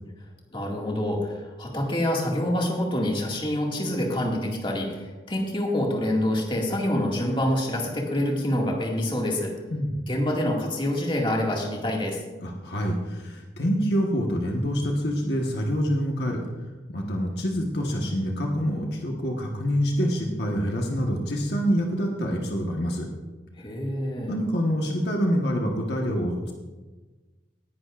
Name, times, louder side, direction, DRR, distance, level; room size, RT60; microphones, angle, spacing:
voice 1, 0.5-9.5 10.1-12.2 23.6-24.3, left 1 dB, 30° left, -1 dB, 2.1 m, -26 dB
voice 2, 9.7-10.0 12.4-16.4 16.9-23.1 24.3-26.5, equal, 65° left, 0 dB, 1.4 m, -26 dB
19.0 x 10.5 x 2.5 m, 1.2 s
head